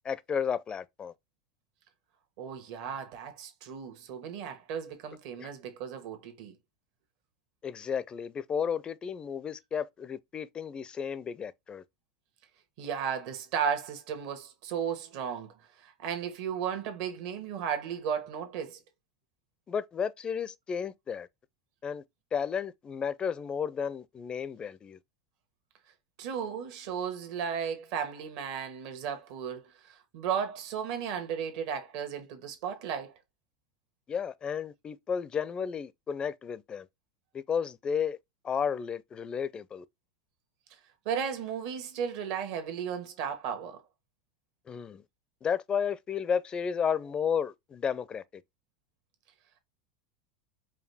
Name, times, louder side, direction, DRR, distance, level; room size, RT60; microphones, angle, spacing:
voice 1, 0.0-1.1 5.4-5.5 7.6-11.8 19.7-21.3 21.8-22.0 22.3-25.0 34.1-36.9 37.3-38.2 38.4-39.8 44.7-45.0 45.4-48.2, left 7 dB, 25° left, 0.4 m, -32 dB
voice 2, 2.4-6.5 12.8-15.5 15.8-18.8 26.2-33.1 41.0-43.8, right 7 dB, 65° right, 1.4 m, -35 dB
5.0 x 2.2 x 3.4 m
hypercardioid pair, 110°, 4 cm